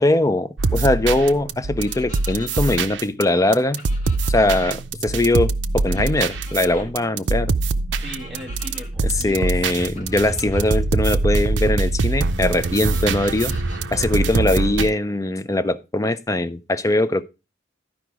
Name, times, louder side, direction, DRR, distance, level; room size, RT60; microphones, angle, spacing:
voice 1, 0.0-3.8 4.3-7.5 9.2-13.5 13.9-17.2, left 2 dB, 20° left, 0.5 m, -21 dB
sound 1, 0.6-14.9, right 3 dB, 75° right, 0.5 m, -24 dB
sound 2, 1.8-2.8 3.8-4.7 5.9-6.9 7.9-8.9 9.9-10.8 12.6-13.8, left 3 dB, 45° left, 2.6 m, -43 dB
voice 2, 8.0-9.8, left 1 dB, ahead, 1.9 m, -38 dB
sound 3, 9.0-14.3, right 2 dB, 55° right, 2.5 m, -30 dB
12.0 x 5.1 x 4.7 m
head